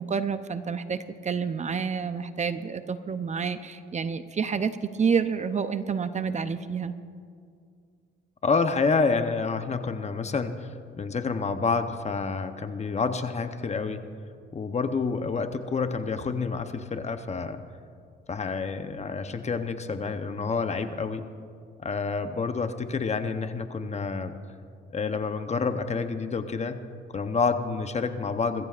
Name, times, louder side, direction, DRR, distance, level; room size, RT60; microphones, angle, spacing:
voice 1, 0.0-6.9, right 6 dB, 35° right, 11 dB, 0.6 m, -29 dB
voice 2, 8.4-14.1 14.5-17.6 18.3-21.3 21.8-24.4 24.9-26.8 27.1-28.7, left 4 dB, 35° left, 8 dB, 0.9 m, -28 dB
23.5 x 14.5 x 2.5 m, 2.3 s
cardioid pair, 90°, 20 cm